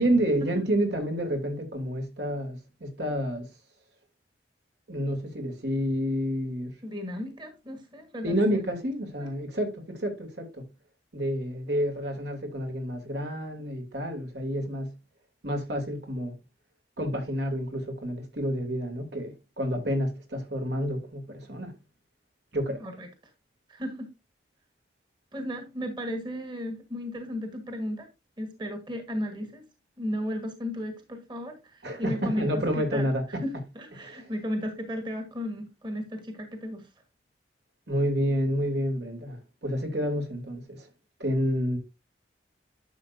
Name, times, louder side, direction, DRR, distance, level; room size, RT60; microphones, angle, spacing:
voice 1, 0.0-3.5 4.9-6.7 8.2-10.6 11.1-14.9 15.4-16.3 17.0-21.7 22.5-22.8 31.8-33.4 34.0-34.3 37.9-40.9 41.2-41.8, equal, 75° right, 2.7 m, -29 dB
voice 2, 6.8-8.6 22.8-23.1 23.7-24.1 25.3-28.1 28.4-29.6 30.0-33.5 33.7-36.9, equal, 25° right, 1.5 m, -35 dB
11.0 x 6.9 x 2.6 m
head